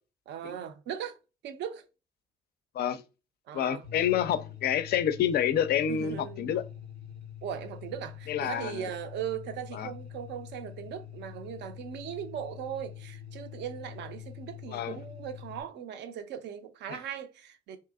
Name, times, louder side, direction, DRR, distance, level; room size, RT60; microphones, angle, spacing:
voice 1, 0.3-1.2 1.4-1.9 3.5-3.9 5.9-6.6 7.4-17.8, right 9 dB, 60° right, 0.5 m, -39 dB
voice 2, 3.5-6.6 8.3-8.9 9.7-9.9 14.7-15.0, left 9 dB, 50° left, 0.4 m, -28 dB
sound 1, 3.8-15.6, left 9 dB, 80° right, 0.8 m, -45 dB
2.8 x 2.6 x 2.3 m
hypercardioid pair, 45°, 21 cm